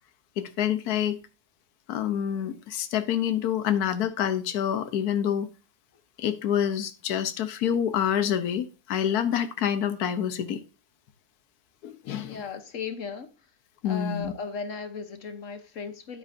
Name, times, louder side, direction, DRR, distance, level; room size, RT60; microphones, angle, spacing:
voice 1, 0.4-1.2 1.9-5.5 6.2-10.6 11.8-12.4 13.8-14.3, left 9 dB, 75° left, 1.4 m, -27 dB
voice 2, 12.2-13.3 13.8-16.2, left 5 dB, 60° left, 1.3 m, -36 dB
12.0 x 10.0 x 2.6 m
omnidirectional pair, 1.6 m